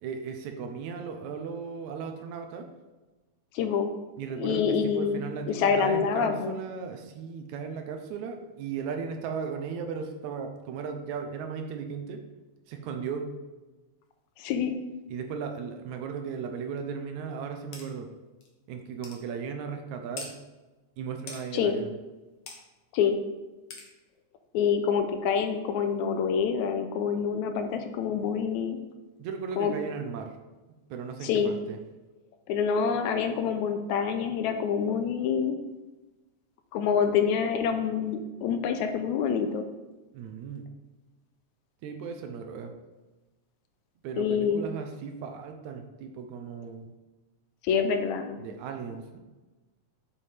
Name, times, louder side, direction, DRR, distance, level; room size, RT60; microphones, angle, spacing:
voice 1, 0.0-2.7 4.2-12.2 12.7-13.3 15.1-18.1 18.7-20.3 21.0-21.9 29.2-30.4 30.9-31.8 40.1-40.7 41.8-42.7 44.0-46.9 48.4-49.2, right 6 dB, 80° right, 5 dB, 2.0 m, -36 dB
voice 2, 3.5-3.9 4.4-5.2 5.5-6.6 14.4-14.7 21.5-21.7 22.9-23.2 24.5-28.8 29.6-29.7 31.2-31.5 32.5-35.6 36.7-39.6 44.2-44.6 47.6-48.4, left 7 dB, 80° left, 7 dB, 1.9 m, -26 dB
sound 1, 17.7-17.9 18.4-18.5 19.0-19.2 20.2-20.3 21.3-21.4 22.5-22.6 23.7-23.9, left 4 dB, 55° left, 1.9 m, -40 dB
7.4 x 6.9 x 3.4 m, 1.1 s
omnidirectional pair, 3.4 m